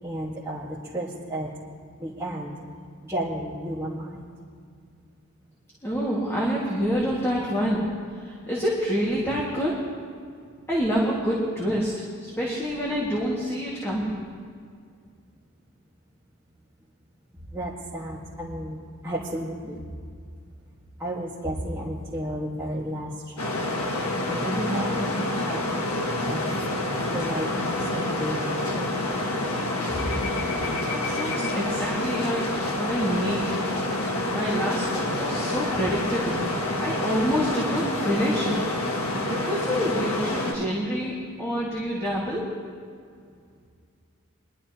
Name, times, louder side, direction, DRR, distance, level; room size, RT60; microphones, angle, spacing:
voice 1, 0.0-1.5 2.0-2.5 3.0-4.3 17.5-19.8 21.0-23.9 24.2-26.5 27.1-28.9, right 1 dB, 15° right, -9 dB, 1.6 m, -33 dB
voice 2, 5.8-7.9 8.2-9.8 10.7-11.9 12.2-14.2 30.9-33.5 34.3-36.4 36.8-38.6 39.3-42.5, equal, 10° left, -6 dB, 1.9 m, -27 dB
sound 1, 23.4-40.5, left 1 dB, 75° left, 1.5 m, -28 dB
22.0 x 12.0 x 2.9 m, 2.2 s
head